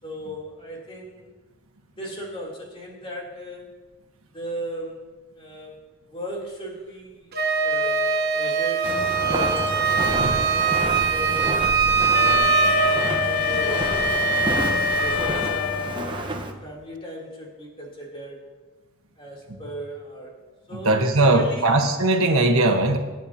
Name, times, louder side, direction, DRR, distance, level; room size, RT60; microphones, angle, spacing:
voice 1, 0.0-1.4 2.0-3.7 4.3-5.7 6.0-7.3 7.6-12.6 13.1-13.9 14.5-16.1 16.6-18.4 19.2-20.4 20.7-21.7, equal, 25° left, -3 dB, 3.2 m, -37 dB
Wind instrument woodwind instrument, 7.3-15.2, right 5 dB, 50° right, 1.2 m, -23 dB
Walk footsteps, 8.8-16.5, right 2 dB, 25° right, 1.1 m, -30 dB
Wind instrument woodwind instrument 2, 12.1-16.3, left 13 dB, 75° left, 0.3 m, -26 dB
voice 2, 20.8-23.0, right 2 dB, 80° right, 4 dB, 1.3 m, -19 dB
25.5 x 9.1 x 2.9 m, 1.2 s
head